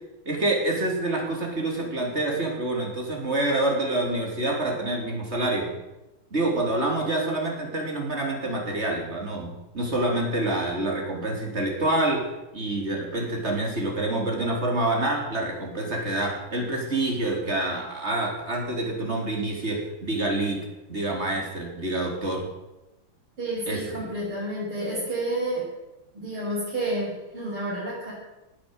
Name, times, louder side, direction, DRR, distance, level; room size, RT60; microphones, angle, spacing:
voice 1, 0.3-5.7 6.3-12.2 12.5-20.6 20.9-22.4 23.7-24.0, right 2 dB, 30° right, 0 dB, 3.8 m, -27 dB
voice 2, 23.4-25.7 26.1-28.1, right 1 dB, 80° right, -9 dB, 7.0 m, -30 dB
18.0 x 8.7 x 8.1 m, 0.98 s
omnidirectional pair, 2.3 m